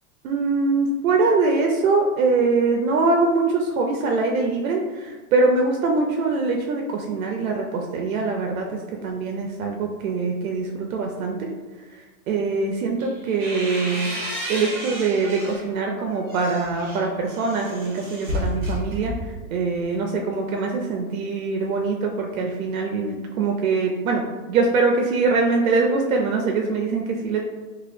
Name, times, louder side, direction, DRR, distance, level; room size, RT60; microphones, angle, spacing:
voice 1, 0.2-11.5 11.9-14.1 14.5-24.2 24.5-27.4, right 3 dB, 75° right, 1 dB, 0.5 m, -23 dB
sound 1, 13.0-15.7 16.1-19.5, equal, 25° right, 0.8 m, -32 dB
2.9 x 2.4 x 3.1 m, 1.3 s
supercardioid pair, 170°, 42 cm